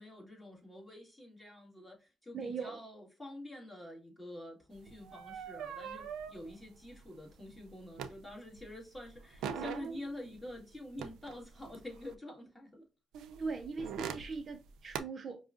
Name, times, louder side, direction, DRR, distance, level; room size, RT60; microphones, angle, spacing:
voice 1, 0.0-12.8, left 1 dB, 10° left, 1.9 m, -47 dB
voice 2, 2.3-2.8 13.4-15.4, right 4 dB, 45° right, 0.6 m, -40 dB
sound 1, 4.8-8.6 8.9-12.1 13.1-15.0, right 7 dB, 85° right, 0.4 m, -43 dB
5.3 x 2.3 x 2.5 m
cardioid pair, 90°, 0 cm